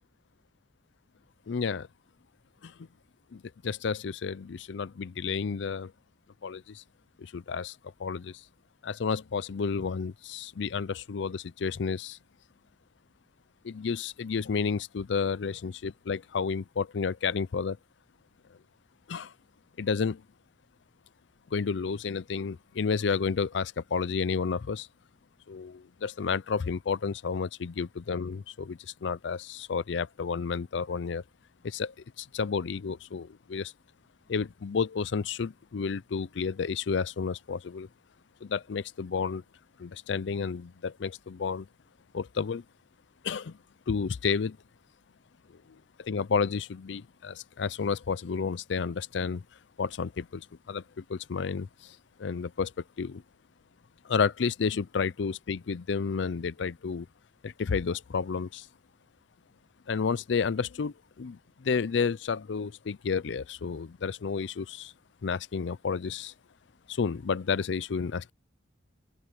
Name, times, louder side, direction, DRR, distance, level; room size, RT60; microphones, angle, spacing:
voice 1, 1.5-1.9 2.6-2.7 3.3-5.9 6.4-6.8 7.2-8.4 8.8-12.2 13.6-17.8 19.1-19.3 19.8-20.2 21.5-24.9 25.5-31.2 31.6-33.7 34.3-37.9 38.4-39.4 39.8-41.7 42.1-42.6 43.2-43.6 43.9-44.6 45.5-45.6 46.0-49.4 49.8-53.2 54.0-57.1 57.4-58.7 59.9-64.9 65.2-66.3 66.9-68.3, left 5 dB, 75° left, 0.5 m, -31 dB
open air
head